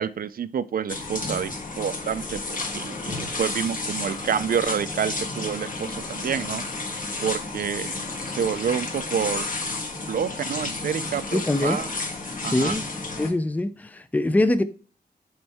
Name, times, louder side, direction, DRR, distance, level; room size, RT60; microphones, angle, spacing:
voice 1, 0.0-1.5 1.8-6.6 7.2-7.9 8.3-9.5 10.1-11.9 12.4-12.8, right 7 dB, 60° right, 0.4 m, -28 dB
sound 1, 0.9-13.3, left 3 dB, 55° left, 1.5 m, -32 dB
voice 2, 11.3-11.8 12.5-12.8 13.2-14.6, left 1 dB, 10° left, 0.4 m, -23 dB
8.0 x 4.4 x 3.5 m
wide cardioid pair, 145°, 17 cm